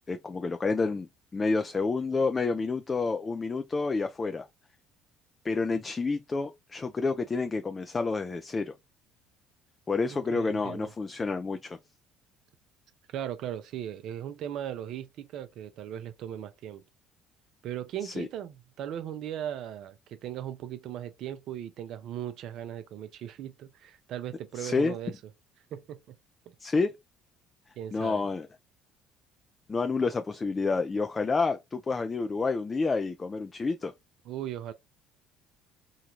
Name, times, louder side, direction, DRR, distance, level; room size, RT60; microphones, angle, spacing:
voice 1, 0.0-4.5 5.4-8.7 9.9-11.8 18.0-18.3 24.6-24.9 26.6-26.9 27.9-28.5 29.7-33.9, left 4 dB, 25° left, 0.3 m, -29 dB
voice 2, 10.1-10.9 13.1-16.8 17.6-25.1 25.7-26.2 26.5-26.6 27.8-28.3 34.2-34.7, right 10 dB, 60° right, 0.5 m, -38 dB
2.9 x 2.2 x 2.9 m
hypercardioid pair, 55°, 0 cm